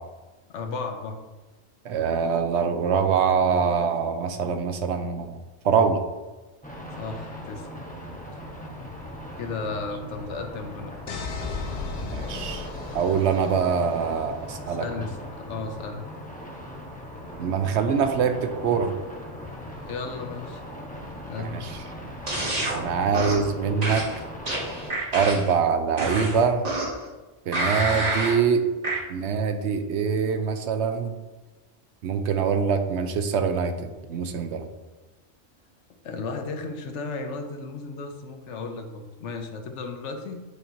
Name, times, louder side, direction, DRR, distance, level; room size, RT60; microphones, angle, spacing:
voice 1, 0.5-1.2 7.0-7.7 9.4-11.0 14.7-16.1 19.8-20.6 21.2-21.6 36.0-40.4, left 4 dB, 90° left, 5 dB, 1.1 m, -34 dB
voice 2, 1.8-5.4 5.6-6.0 12.0-12.7 12.9-14.8 17.4-18.9 21.4-21.7 22.7-24.0 25.1-26.7 27.5-28.6 29.1-31.1 32.0-34.7, right 6 dB, 80° right, 7 dB, 0.9 m, -24 dB
sound 1, 6.6-24.9, equal, 10° left, 0.9 m, -39 dB
sound 2, 11.1-13.9, left 4 dB, 65° left, 0.9 m, -35 dB
sound 3, 22.3-22.8 23.1-23.5 23.8-25.5 26.0-27.0 27.5-28.4 28.8-29.0, right 2 dB, 35° right, 1.4 m, -28 dB
8.3 x 4.4 x 2.7 m, 1.2 s
omnidirectional pair, 1.2 m